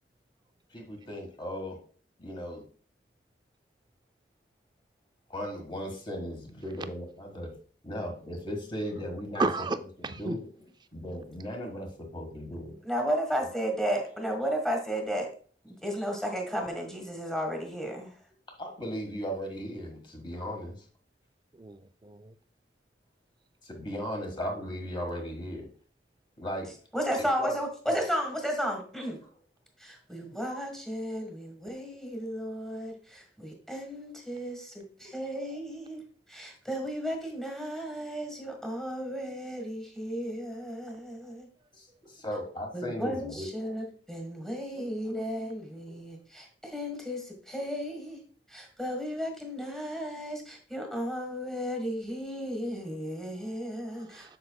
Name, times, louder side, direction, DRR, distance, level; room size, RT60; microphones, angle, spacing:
voice 1, 0.7-1.8 2.2-2.6 5.3-7.5 7.8-9.5 10.0-10.5 10.9-12.8 13.4-13.5 18.6-20.8 23.6-25.7 26.4-26.7 27.2-27.6 27.9-28.0 29.2-29.3 35.0-35.1 41.7-43.5 44.8-44.9 45.9-46.0, equal, 30° left, 1.7 m, -37 dB
voice 2, 9.4-9.8 10.0-10.4 21.6-22.3 53.9-54.4, right 3 dB, 25° right, 0.4 m, -32 dB
voice 3, 12.8-15.3 15.6-18.1 26.9-29.2 29.8-36.0 36.3-41.5 42.7-48.2 48.5-54.4, equal, 5° left, 1.5 m, -34 dB
7.8 x 6.7 x 2.3 m
head